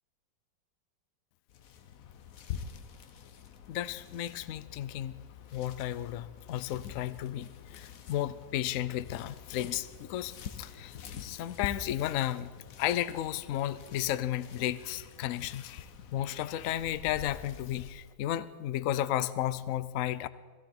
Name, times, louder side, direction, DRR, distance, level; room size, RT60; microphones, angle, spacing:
sound 1, 1.5-18.1, left 8 dB, 55° left, 1.1 m, -46 dB
voice 1, 3.7-5.2 5.5-12.5 12.8-20.3, left 12 dB, 85° left, 16 dB, 0.7 m, -33 dB
16.5 x 16.0 x 4.4 m, 1.5 s
omnidirectional pair, 2.0 m